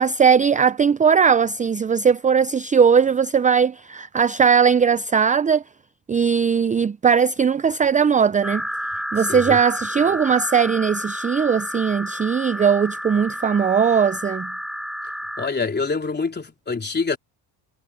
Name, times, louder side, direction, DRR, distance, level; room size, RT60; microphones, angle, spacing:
voice 1, 0.0-5.6 6.1-8.7 9.1-14.5, right 6 dB, 20° right, 0.5 m, -19 dB
sound 1, 8.4-15.5, equal, ahead, 4.7 m, -30 dB
voice 2, 15.4-17.2, left 4 dB, 25° left, 4.0 m, -25 dB
supercardioid pair, 90°, 43 cm